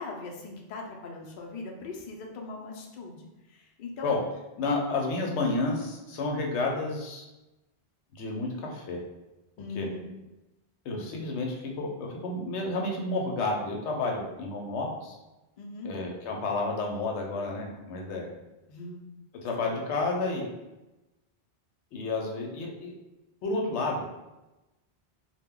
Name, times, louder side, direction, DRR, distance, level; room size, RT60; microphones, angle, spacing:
voice 1, 0.0-4.1 9.6-10.1 10.9-11.2 15.6-15.9 18.7-19.0 19.6-19.7, left 3 dB, 60° left, 0 dB, 0.6 m, -40 dB
voice 2, 4.6-7.2 8.2-9.0 9.8-9.9 10.9-15.2 15.8-18.3 19.4-20.5 21.9-22.9 23.4-24.0, left 3 dB, 85° left, 0 dB, 0.9 m, -30 dB
2.1 x 2.1 x 3.5 m, 1.0 s
omnidirectional pair, 1.1 m